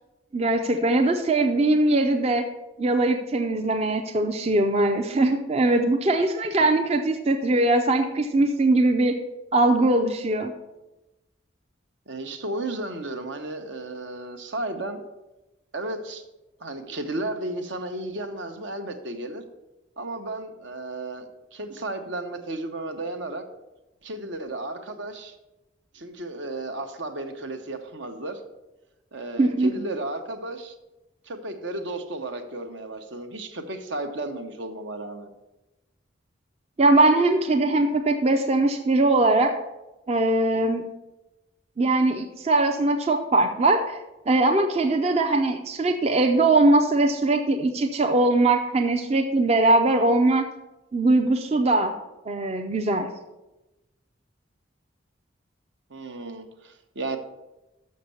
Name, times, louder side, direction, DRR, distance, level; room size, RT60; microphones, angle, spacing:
voice 1, 0.3-2.5 2.8-9.2 9.5-10.5 29.4-29.7 36.8-39.6 40.1-40.8 41.8-44.0 44.3-50.4 50.9-51.9 52.3-53.1, right 2 dB, 35° right, 4 dB, 0.5 m, -21 dB
voice 2, 12.1-15.0 15.7-16.2 16.6-19.4 20.0-23.4 24.0-25.4 25.9-28.4 29.1-30.8 31.2-35.3 55.9-57.2, right 2 dB, 70° right, 6 dB, 1.0 m, -33 dB
6.6 x 6.4 x 6.9 m, 0.99 s
head